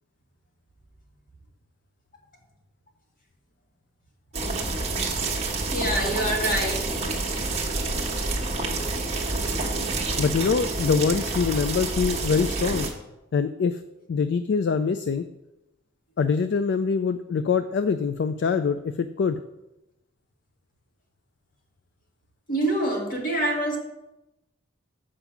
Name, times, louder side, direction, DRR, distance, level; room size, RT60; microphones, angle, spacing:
sound 1, 4.3-12.9, right 3 dB, 35° right, 1.1 m, -28 dB
voice 1, 5.7-7.1 22.5-23.8, right 1 dB, 45° left, -1 dB, 1.8 m, -26 dB
voice 2, 10.2-12.9 13.3-13.8 14.1-15.2 16.2-19.4, left 5 dB, 60° left, 10 dB, 0.3 m, -24 dB
7.1 x 5.0 x 5.8 m, 0.94 s
head